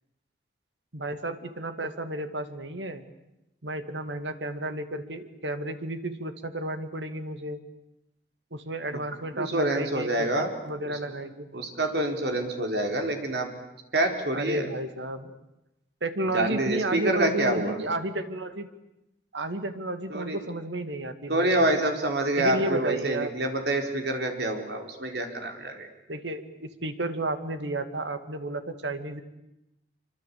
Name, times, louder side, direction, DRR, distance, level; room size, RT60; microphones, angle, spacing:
voice 1, 0.9-3.0 3.6-7.6 8.5-11.5 14.3-15.3 16.0-18.7 19.3-21.8 22.4-23.3 26.1-29.2, right 2 dB, 85° right, 9 dB, 2.4 m, -32 dB
voice 2, 9.3-10.5 10.8-11.0 11.5-13.5 13.9-14.7 16.3-17.8 20.1-20.4 21.3-25.9, right 1 dB, 70° right, 4 dB, 4.5 m, -27 dB
26.5 x 24.5 x 8.6 m, 0.88 s
head